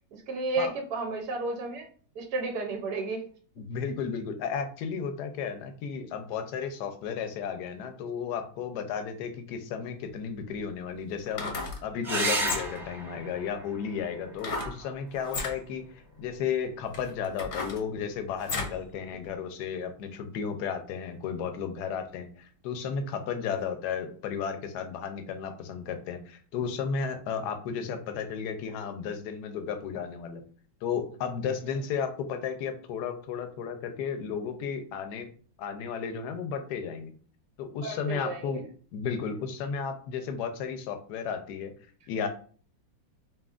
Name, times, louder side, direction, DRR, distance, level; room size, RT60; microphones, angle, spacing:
voice 1, 0.1-1.9 2.1-3.2 14.5-14.9 15.2-15.4 37.8-38.6, right 3 dB, 65° right, 2 dB, 1.1 m, -33 dB
voice 2, 3.6-11.5 11.8-15.9 16.2-30.4 30.8-35.3 35.6-37.1 37.6-38.6 38.9-41.7 42.1-42.3, left 6 dB, 70° left, 7 dB, 1.1 m, -33 dB
sound 1, 10.0-10.1 11.2-11.8 12.4-12.9 14.4-14.8 15.2-15.6 16.3-16.4 16.9-18.8 19.2-19.3, left 3 dB, 50° left, 0.8 m, -34 dB
sound 2, 12.0-17.1 18.9-19.6 23.0-23.1 23.5-23.6, right 2 dB, 15° right, 1.2 m, -36 dB
5.0 x 2.9 x 2.4 m, 0.43 s
omnidirectional pair, 2.1 m